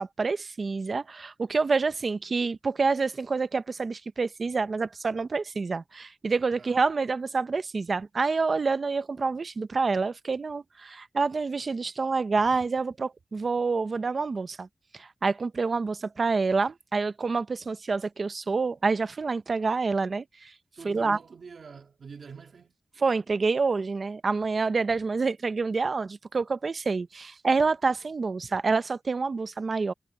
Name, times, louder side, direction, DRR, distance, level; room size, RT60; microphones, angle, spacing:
voice 1, 0.0-14.7 14.9-20.5 20.8-21.2 23.0-29.9, right 4 dB, 55° right, 0.7 m, -27 dB
voice 2, 20.8-22.8 27.1-27.4, right 5 dB, 80° right, 2.3 m, -46 dB
wide cardioid pair, 135°, 0 cm